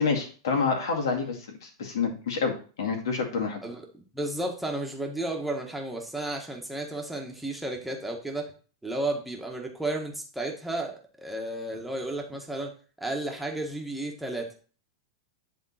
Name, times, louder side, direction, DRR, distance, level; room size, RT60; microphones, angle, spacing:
voice 1, 0.0-3.6, left 5 dB, 75° left, 2 dB, 2.2 m, -28 dB
voice 2, 4.1-8.5 8.8-12.7 13.0-14.5, right 2 dB, 5° right, 0 dB, 1.5 m, -33 dB
10.0 x 3.7 x 4.3 m, 0.39 s
hypercardioid pair, 115°, 2 cm